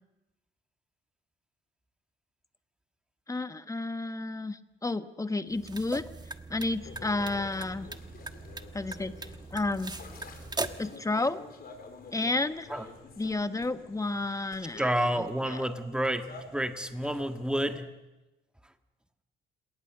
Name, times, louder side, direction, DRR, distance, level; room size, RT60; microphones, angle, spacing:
voice 1, 3.3-6.1 6.5-7.9 8.7-10.0 10.8-11.4 12.1-12.7 13.2-15.6, left 2 dB, 15° left, 11 dB, 1.2 m, -32 dB
sound 1, 5.5-11.0, right 3 dB, 20° right, 1.3 m, -40 dB
sound 2, 6.7-17.8, left 4 dB, 50° left, 4.5 m, -49 dB
voice 2, 14.8-17.9, right 1 dB, 5° right, 7 dB, 1.7 m, -30 dB
29.0 x 18.5 x 6.7 m, 1.0 s
cardioid pair, 90°, 20 cm